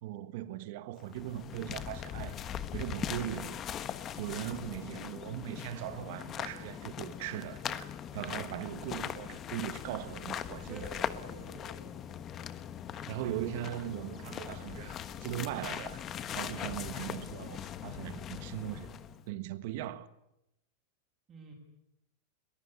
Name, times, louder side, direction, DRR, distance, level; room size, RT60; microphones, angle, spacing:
voice 1, 0.0-2.4 2.7-3.6 4.2-10.9 12.9-16.0 16.3-18.9 19.3-20.1, right 13 dB, 50° right, 1.5 m, -39 dB
sound 1, 1.0-19.2, left 9 dB, 25° left, 1.2 m, -40 dB
voice 2, 10.7-12.2 21.3-21.5, right 1 dB, 20° right, 6.6 m, -49 dB
22.0 x 21.0 x 9.8 m
supercardioid pair, 160°, 0 cm